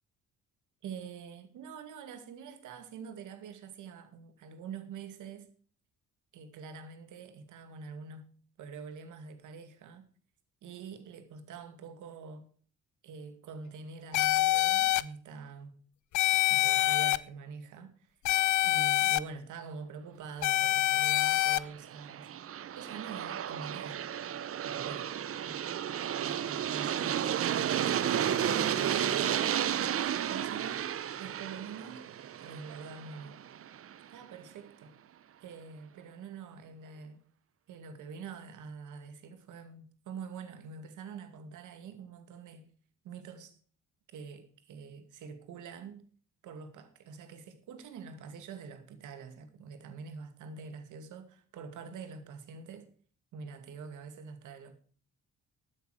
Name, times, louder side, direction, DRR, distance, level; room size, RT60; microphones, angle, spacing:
voice 1, 0.8-5.5 6.3-8.3 8.6-10.1 10.6-12.5 13.0-15.8 16.5-18.1 18.6-22.3 22.7-24.0 24.6-25.7 26.2-32.1 32.4-33.4 34.1-35.0 35.4-37.3 37.7-42.7 43.0-43.6 44.1-46.1 46.4-52.9 53.3-54.7, right 5 dB, 80° right, 2.3 m, -46 dB
sound 1, 14.1-15.0 16.1-17.2 18.3-19.2 20.4-21.6, left 16 dB, 75° left, 0.7 m, -26 dB
Aircraft, 21.1-33.9, right 9 dB, 50° right, 0.7 m, -33 dB
14.0 x 9.2 x 4.9 m
cardioid pair, 90°, 30 cm